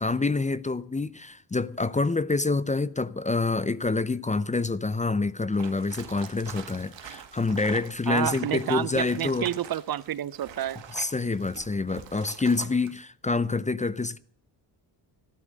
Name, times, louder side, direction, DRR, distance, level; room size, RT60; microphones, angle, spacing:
voice 1, 0.0-9.5 10.9-14.2, left 3 dB, 15° left, 0.6 m, -27 dB
sound 1, 5.5-13.0, right 9 dB, 75° right, 2.0 m, -45 dB
voice 2, 8.1-10.8, right 11 dB, 55° right, 0.7 m, -29 dB
14.5 x 12.0 x 6.5 m
cardioid pair, 80°, 44 cm